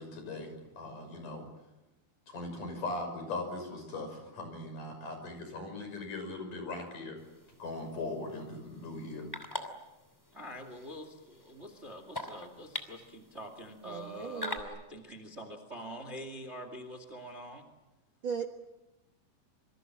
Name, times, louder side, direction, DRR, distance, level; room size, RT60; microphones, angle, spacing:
voice 1, 0.0-1.4 2.3-7.2 7.6-9.3, left 2 dB, 55° left, 6 dB, 7.5 m, -39 dB
sound 1, 7.2-14.6, left 1 dB, 5° left, 1.9 m, -45 dB
voice 2, 10.3-17.7, equal, 20° right, 7 dB, 1.9 m, -45 dB
voice 3, 13.8-14.6 18.2-18.5, right 6 dB, 85° right, 4 dB, 1.1 m, -37 dB
27.0 x 25.0 x 7.6 m, 1.0 s
omnidirectional pair, 4.5 m